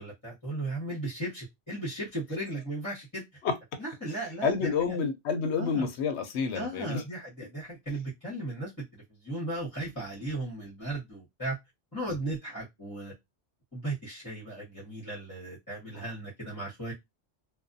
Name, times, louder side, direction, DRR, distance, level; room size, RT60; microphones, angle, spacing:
voice 1, 0.0-3.2 3.8-5.0 5.6-5.9 6.5-11.5 11.9-13.1 13.7-16.9, right 1 dB, 20° left, 1.0 m, -36 dB
voice 2, 4.1-7.0 15.9-16.0, left 5 dB, 75° left, 0.9 m, -29 dB
2.4 x 2.3 x 2.5 m
omnidirectional pair, 1.1 m